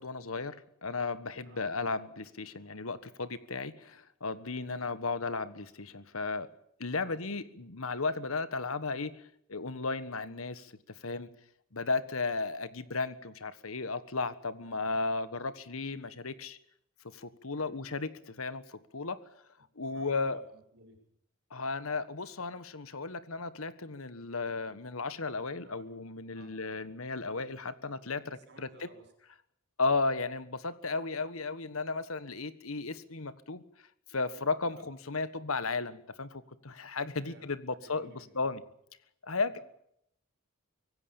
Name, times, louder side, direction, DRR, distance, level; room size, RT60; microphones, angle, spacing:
voice 1, 0.0-6.5 6.8-9.1 9.5-10.7 11.0-11.3 11.7-16.6 17.1-19.2 19.8-20.4 21.5-28.7 29.8-33.6 34.1-38.6 39.2-39.6, left 3 dB, 70° left, 14 dB, 1.5 m, -34 dB
voice 2, 19.9-21.0 25.6-25.9 26.3-26.5 28.2-29.1 34.7-34.9 37.2-38.6 39.5-39.6, right 2 dB, 55° right, 4 dB, 6.5 m, -58 dB
25.0 x 17.5 x 7.2 m, 0.72 s
head